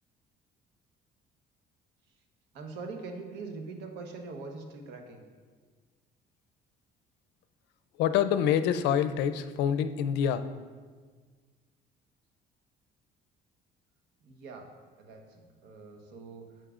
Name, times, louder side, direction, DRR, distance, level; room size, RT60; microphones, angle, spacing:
voice 1, 2.5-5.2 14.2-14.7 15.0-16.5, right 4 dB, 80° right, 4 dB, 1.1 m, -43 dB
voice 2, 8.0-10.5, left 9 dB, 90° left, 12 dB, 0.4 m, -26 dB
10.0 x 7.3 x 2.5 m, 1.5 s
cardioid pair, 110°, 17 cm